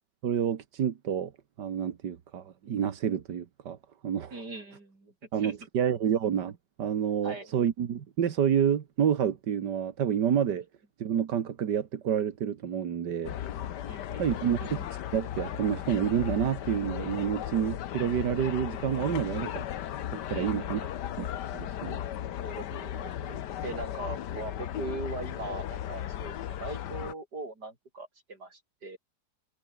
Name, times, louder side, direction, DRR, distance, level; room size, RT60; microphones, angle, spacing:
voice 1, 0.2-1.3 1.6-3.8 4.0-4.3 5.3-10.7 11.0-13.3 14.2-19.7 20.1-20.8 21.2-21.3 21.5-22.0, right 8 dB, 90° right, 2.0 m, -29 dB
voice 2, 4.3-5.5 7.2-7.5 13.9-14.7 20.3-20.9 22.4-29.0, right 2 dB, 70° right, 6.1 m, -41 dB
sound 1, 13.2-27.1, left 11 dB, 80° left, 1.6 m, -36 dB
omnidirectional pair, 1.8 m